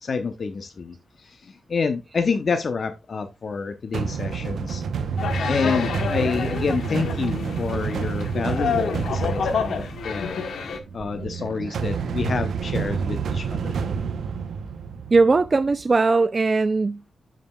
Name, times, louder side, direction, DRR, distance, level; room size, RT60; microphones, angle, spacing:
voice 1, 0.0-4.8 5.5-10.7 10.9-14.0, left 5 dB, 55° left, 0.7 m, -28 dB
sound 1, 3.9-15.8, right 6 dB, 80° right, 0.7 m, -29 dB
sound 2, 5.2-10.8, left 6 dB, 80° left, 1.0 m, -29 dB
sound 3, 7.7-11.2 11.5-11.6, left 2 dB, 25° left, 3.3 m, -43 dB
voice 2, 15.1-17.1, right 3 dB, 40° right, 0.3 m, -19 dB
11.0 x 5.0 x 2.3 m
cardioid pair, 70°, 0 cm